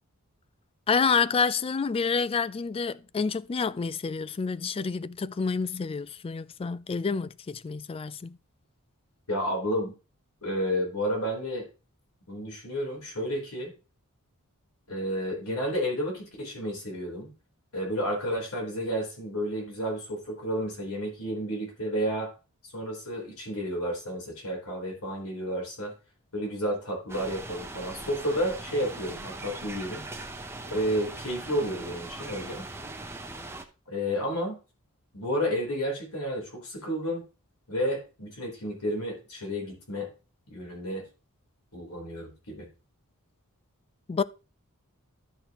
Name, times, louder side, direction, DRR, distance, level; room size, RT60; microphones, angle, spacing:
voice 1, 0.9-8.4 44.1-44.2, left 5 dB, 25° left, 0.3 m, -28 dB
voice 2, 9.3-9.9 10.4-11.7 12.3-13.7 14.9-17.3 17.7-22.3 22.7-25.9 26.3-30.0 30.7-32.7 33.9-34.6 35.1-37.2 37.7-40.1 40.5-41.1 41.7-42.7, equal, 85° left, 3.8 m, -31 dB
sound 1, 27.1-33.6, right 2 dB, 10° right, 0.8 m, -40 dB
11.5 x 6.5 x 3.0 m
head